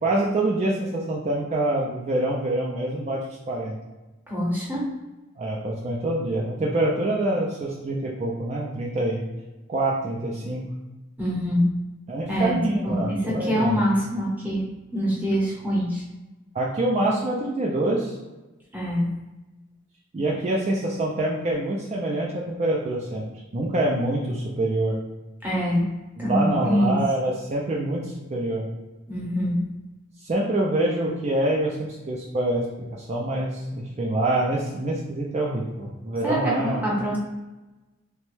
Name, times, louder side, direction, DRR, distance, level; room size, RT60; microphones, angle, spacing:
voice 1, 0.0-3.2 3.5-3.7 5.4-9.2 9.7-10.6 12.1-13.8 16.5-18.1 20.1-22.3 22.6-23.2 23.5-25.0 26.2-28.6 30.2-31.8 32.1-32.6 33.0-36.8, right 1 dB, 35° right, -4 dB, 0.4 m, -25 dB
voice 2, 4.3-4.9 11.2-11.6 12.3-12.6 12.8-14.6 14.9-16.0 18.7-19.1 25.4-25.9 26.2-27.0 29.1-29.6 36.2-37.2, equal, 10° right, -5 dB, 0.8 m, -24 dB
3.0 x 2.2 x 3.1 m, 1.1 s
head